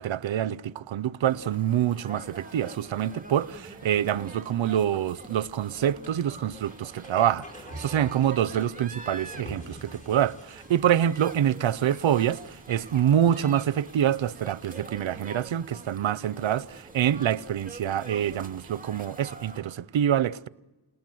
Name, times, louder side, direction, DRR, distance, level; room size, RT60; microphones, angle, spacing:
voice 1, 0.0-20.5, right 10 dB, 80° right, 0.8 m, -26 dB
sound 1, 1.2-19.6, right 2 dB, 20° right, 2.4 m, -46 dB
sound 2, 3.7-19.7, right 1 dB, 15° left, 4.9 m, -51 dB
29.0 x 19.0 x 7.9 m
cardioid pair, 60°, 46 cm